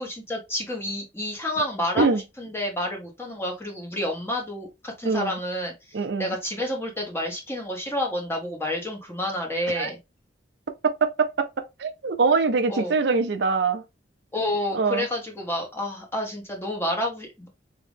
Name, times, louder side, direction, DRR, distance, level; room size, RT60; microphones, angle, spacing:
voice 1, 0.0-2.1 2.4-10.0 12.7-12.9 14.3-17.5, left 1 dB, 15° left, 1.2 m, -29 dB
voice 2, 5.0-5.4 5.9-6.4 9.7-9.9 10.8-11.5 11.8-13.8 14.7-15.1, right 4 dB, 70° right, 0.5 m, -23 dB
3.6 x 2.9 x 3.5 m
head